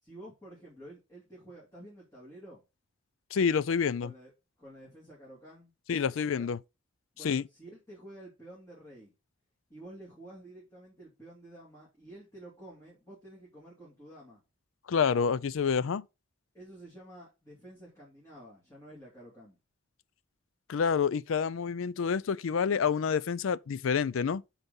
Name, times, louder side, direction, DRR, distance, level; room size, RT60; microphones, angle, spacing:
voice 1, 0.0-2.6 4.0-4.3 4.6-5.7 6.1-6.5 7.1-9.1 9.7-14.4 16.5-19.6, right 1 dB, 15° left, 2.5 m, -50 dB
voice 2, 3.3-4.1 5.9-6.6 7.2-7.4 14.9-16.0 20.7-24.4, left 6 dB, 75° left, 0.4 m, -28 dB
7.9 x 4.0 x 5.4 m
head